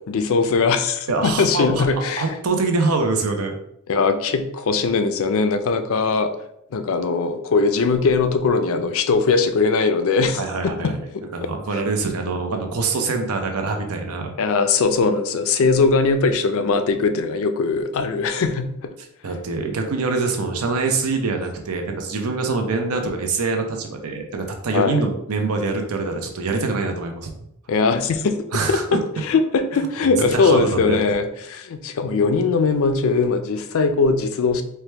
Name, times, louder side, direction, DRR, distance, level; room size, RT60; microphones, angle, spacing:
voice 1, 0.0-2.3 3.9-6.3 6.7-10.4 10.8-10.9 11.4-11.5 14.4-18.9 24.7-25.0 27.7-28.4 28.7-28.8 29.2-34.6, left 4 dB, 65° left, 9 dB, 0.4 m, -20 dB
voice 2, 1.1-1.8 2.2-3.6 10.3-11.0 11.3-14.3 19.2-27.4 28.5-29.0 29.8-31.0, right 3 dB, 80° right, 4 dB, 0.7 m, -24 dB
4.6 x 2.2 x 3.3 m, 0.76 s
head